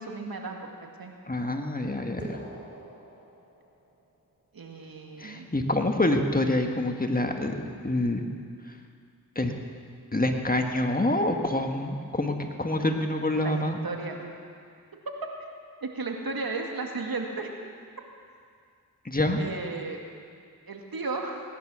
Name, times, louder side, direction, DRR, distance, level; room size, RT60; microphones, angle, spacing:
voice 1, 0.0-1.1 4.5-5.5 13.3-14.4 15.2-15.3 15.8-17.5 19.4-20.0 20.7-21.4, right 3 dB, 65° right, 2 dB, 2.2 m, -34 dB
voice 2, 1.3-2.5 5.2-7.5 7.8-8.2 9.3-9.5 10.1-13.8 19.0-19.4, left 1 dB, 20° left, 4 dB, 1.7 m, -26 dB
sound 1, 2.2-4.1, right 2 dB, 25° right, 3.3 m, -44 dB
18.5 x 11.0 x 6.3 m, 2.2 s
cardioid pair, 40°, 39 cm